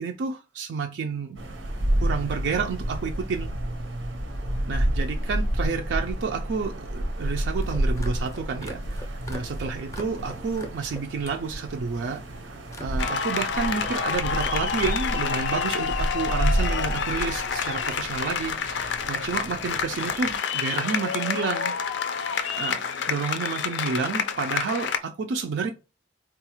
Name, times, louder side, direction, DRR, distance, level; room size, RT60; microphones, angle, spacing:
voice 1, 0.0-1.4 2.0-3.5 4.7-21.7 22.6-25.7, right 5 dB, 70° right, 0.3 m, -30 dB
sound 1, 1.4-20.4, right 1 dB, 90° right, 0.7 m, -30 dB
sound 2, 7.6-11.4 11.7-12.2 12.7-13.5 13.7-15.4, equal, 15° left, 0.5 m, -43 dB
sound 3, 13.0-25.0, left 6 dB, 75° left, 0.4 m, -28 dB
3.9 x 2.3 x 2.9 m
head